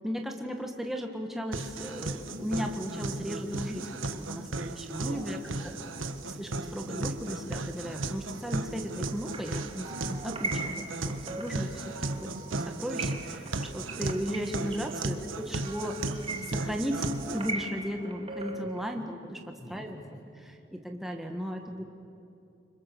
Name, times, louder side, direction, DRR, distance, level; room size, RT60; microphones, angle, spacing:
voice 1, 0.0-5.4 5.6-5.7 6.3-16.2 16.4-20.0 20.7-21.8, equal, ahead, 3 dB, 1.5 m, -36 dB
sound 1, 1.5-17.5, right 2 dB, 85° right, 1.5 m, -35 dB
voice 2, 5.1-6.5 15.0-15.7 16.0-16.2 16.4-16.6 18.5-19.1 19.6-20.2 21.4-21.5, equal, 20° left, -2 dB, 6.0 m, -50 dB
sound 2, 9.1-18.8, right 3 dB, 30° right, 1.9 m, -40 dB
29.5 x 26.0 x 6.9 m, 2.7 s
head